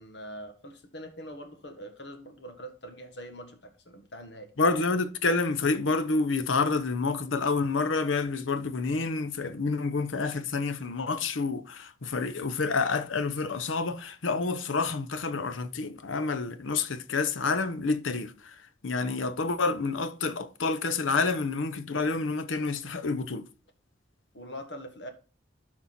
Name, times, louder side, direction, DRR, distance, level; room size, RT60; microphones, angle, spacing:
voice 1, 0.0-4.5 24.3-25.1, equal, 65° left, 1.5 m, -43 dB
voice 2, 4.6-18.5 18.8-23.5, left 4 dB, 90° left, 0.8 m, -28 dB
12.0 x 4.3 x 4.3 m
head